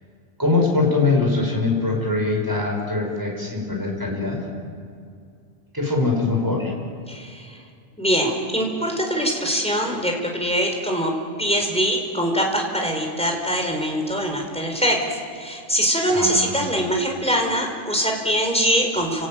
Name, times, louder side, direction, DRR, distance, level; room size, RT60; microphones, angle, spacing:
voice 1, 0.4-4.4 5.7-6.7 16.1-16.7, left 3 dB, 15° right, -1 dB, 6.4 m, -22 dB
voice 2, 7.1-7.6 8.0-11.1 11.4-19.3, equal, 5° left, 1 dB, 4.6 m, -23 dB
30.0 x 18.5 x 9.3 m, 2.3 s
omnidirectional pair, 1.2 m